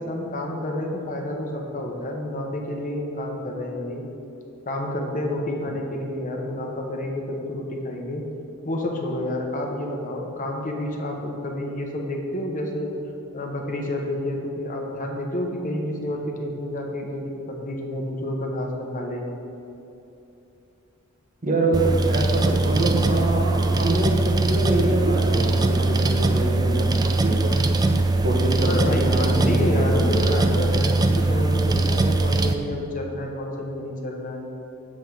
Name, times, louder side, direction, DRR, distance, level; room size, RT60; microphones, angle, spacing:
voice 1, 0.0-4.0 4.7-8.2 8.6-12.9 13.3-19.3 28.7-34.5, left 1 dB, 40° left, 1 dB, 1.0 m, -29 dB
voice 2, 21.4-27.5 28.2-30.4, right 1 dB, 40° right, 0 dB, 1.1 m, -25 dB
sound 1, 21.7-32.5, right 2 dB, 20° right, 0.4 m, -21 dB
8.7 x 7.4 x 4.7 m, 2.9 s
head